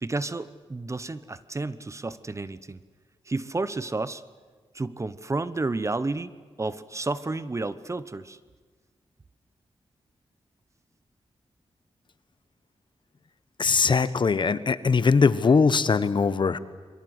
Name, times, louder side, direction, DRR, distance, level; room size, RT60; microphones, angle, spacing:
voice 1, 0.0-2.8 3.3-4.2 4.7-6.3 6.6-8.4, right 3 dB, 30° right, 15 dB, 0.9 m, -31 dB
voice 2, 13.6-16.6, left 5 dB, 50° left, 14 dB, 1.1 m, -21 dB
27.5 x 23.0 x 8.0 m, 1.4 s
cardioid pair, 80°, 10 cm